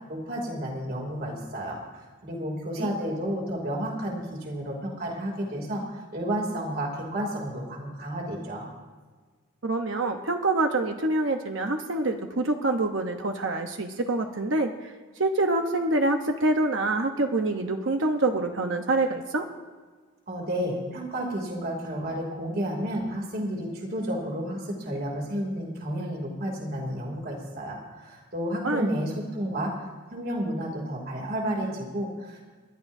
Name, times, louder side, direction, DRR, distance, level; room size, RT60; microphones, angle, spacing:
voice 1, 0.1-8.7 20.3-32.4, equal, 45° right, -1 dB, 2.9 m, -31 dB
voice 2, 9.6-19.5 28.6-28.9, right 2 dB, 60° right, 4 dB, 1.0 m, -26 dB
30.0 x 11.5 x 2.7 m, 1.4 s
head